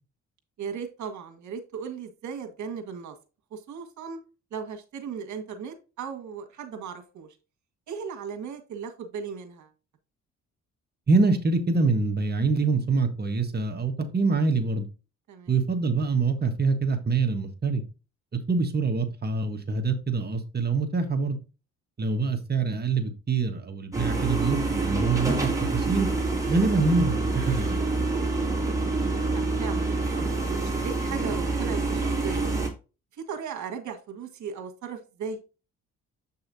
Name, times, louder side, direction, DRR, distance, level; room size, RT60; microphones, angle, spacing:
voice 1, 0.6-3.1 3.5-4.2 4.5-7.3 7.9-9.7 15.3-15.5 22.0-22.2 29.0-32.5 33.2-35.4, right 6 dB, 70° right, 7 dB, 1.8 m, -37 dB
voice 2, 11.1-14.9 15.5-17.8 18.5-21.4 22.0-26.1 26.5-27.8, right 4 dB, 35° right, 6 dB, 1.4 m, -25 dB
sound 1, 23.9-32.7, right 3 dB, 10° right, 2.5 m, -27 dB
8.0 x 5.6 x 2.7 m, 0.31 s
cardioid pair, 90°, 30 cm